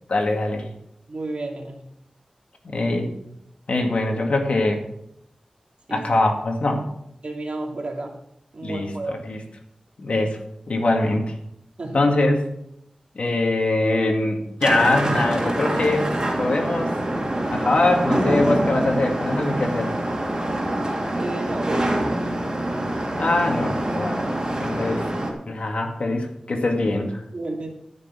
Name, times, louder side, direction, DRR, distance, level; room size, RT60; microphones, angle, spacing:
voice 1, 0.1-0.7 2.6-3.1 3.7-4.8 5.9-6.8 8.6-9.4 10.0-10.4 10.7-11.3 11.9-12.4 13.2-16.1 16.4-16.9 17.5-19.9 23.2-24.2 24.6-25.0 25.5-27.2, left 2 dB, 65° left, 2 dB, 2.1 m, -22 dB
voice 2, 1.1-1.8 5.9-6.1 7.2-8.2 8.5-9.2 11.8-12.1 21.1-22.5 27.3-27.7, right 2 dB, 60° right, 1 dB, 2.6 m, -32 dB
sound 1, 14.6-25.3, right 1 dB, 35° right, 3.0 m, -25 dB
13.5 x 6.4 x 6.2 m, 0.79 s
wide cardioid pair, 80°, 2 cm